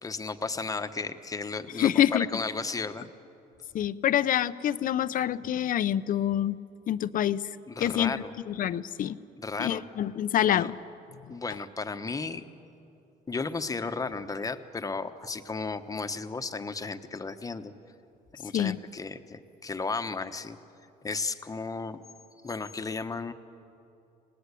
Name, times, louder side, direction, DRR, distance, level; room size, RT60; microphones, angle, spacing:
voice 1, 0.0-3.1 7.7-8.3 9.4-9.9 10.4-10.7 11.3-12.5 13.3-17.7 18.3-20.6 21.0-22.0 22.4-23.3, left 4 dB, 20° left, 9 dB, 1.1 m, -34 dB
voice 2, 1.8-2.3 3.7-6.6 6.9-7.4 7.8-9.2 9.6-10.7 18.5-18.8, left 11 dB, 55° left, 15 dB, 0.7 m, -26 dB
26.0 x 19.0 x 8.5 m, 2.7 s
cardioid pair, 110°, 17 cm